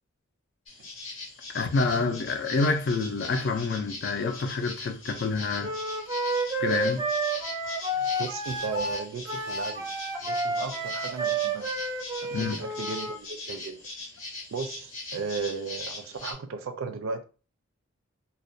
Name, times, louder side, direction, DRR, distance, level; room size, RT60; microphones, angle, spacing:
sound 1, 0.7-16.3, left 2 dB, 85° left, 0.9 m, -41 dB
voice 1, 1.5-5.7 6.6-7.0 12.3-12.6, left 3 dB, 55° left, 0.4 m, -27 dB
Wind instrument woodwind instrument, 5.6-13.2, right 2 dB, 20° right, 0.5 m, -30 dB
voice 2, 8.0-9.9 10.2-11.7 12.2-13.9 14.5-17.2, right 5 dB, 85° right, 0.4 m, -36 dB
2.3 x 2.1 x 2.6 m
head